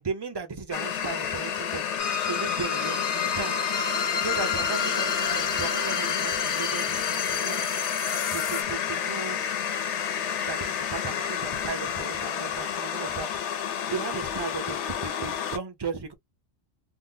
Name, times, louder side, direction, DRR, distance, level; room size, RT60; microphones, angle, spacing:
voice 1, 0.0-1.9 2.2-3.6 4.2-7.6 8.3-9.4 10.5-13.3 13.6-16.1, right 5 dB, 25° right, 0.6 m, -36 dB
sound 1, 0.7-15.6, left 8 dB, 65° left, 0.9 m, -30 dB
sound 2, 2.0-8.6, left 6 dB, 45° left, 0.9 m, -30 dB
2.7 x 2.1 x 3.8 m
omnidirectional pair, 1.4 m